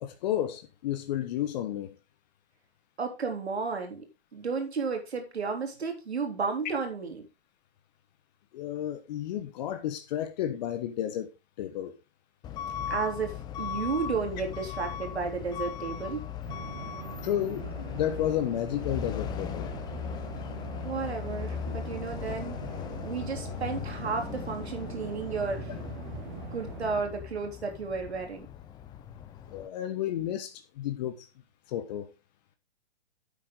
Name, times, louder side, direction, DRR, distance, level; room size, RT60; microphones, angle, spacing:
voice 1, 0.0-1.9 8.5-11.3 11.6-11.9 17.2-19.7 29.5-31.3 31.7-32.1, left 11 dB, 40° left, 1.1 m, -32 dB
voice 2, 3.0-4.1 4.3-7.3 12.9-16.2 20.8-22.6 23.0-25.7 26.5-28.5, right 5 dB, 75° right, 3.7 m, -33 dB
Truck / Alarm, 12.4-29.7, left 8 dB, 15° left, 0.6 m, -38 dB
sound 1, 16.4-27.0, right 6 dB, 45° right, 3.1 m, -42 dB
10.0 x 8.4 x 3.8 m
figure-of-eight pair, 125°, 32 cm